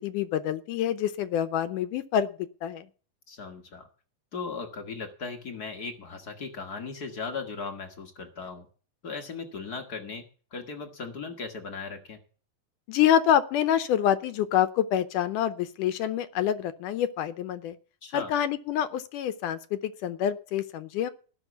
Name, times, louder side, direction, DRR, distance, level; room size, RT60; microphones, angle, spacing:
voice 1, 0.0-2.3 2.6-2.9 12.9-17.8 18.1-21.1, left 10 dB, 75° left, 12 dB, 2.1 m, -26 dB
voice 2, 3.3-3.9 4.3-8.7 9.0-10.2 10.5-12.2 18.0-18.3, left 4 dB, 50° left, 6 dB, 1.1 m, -37 dB
18.0 x 6.2 x 7.0 m, 0.39 s
omnidirectional pair, 4.1 m